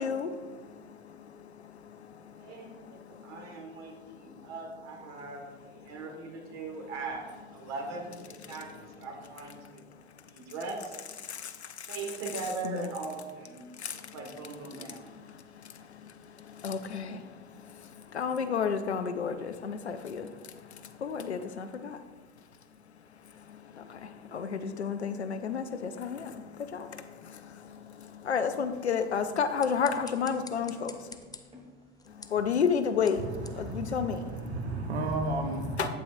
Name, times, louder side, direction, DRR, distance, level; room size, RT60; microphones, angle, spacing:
voice 1, 0.0-4.5 5.1-5.3 5.8-6.1 8.4-8.8 9.6-10.5 11.2-12.0 12.6-12.9 13.6-14.2 14.7-31.2 32.1-34.7 35.8-35.9, left 6 dB, 90° left, 10 dB, 0.5 m, -34 dB
voice 2, 2.4-7.3 7.5-9.9 10.3-11.0 11.9-15.1, right 4 dB, 55° right, 2 dB, 1.8 m, -40 dB
sound 1, 27.6-32.2, left 3 dB, 20° right, 2.2 m, -55 dB
sound 2, 29.3-34.6, left 4 dB, 10° left, 0.5 m, -51 dB
voice 3, 33.2-35.9, right 2 dB, 80° right, 5 dB, 0.9 m, -33 dB
8.3 x 8.3 x 2.6 m, 1.4 s
figure-of-eight pair, 65°, 32 cm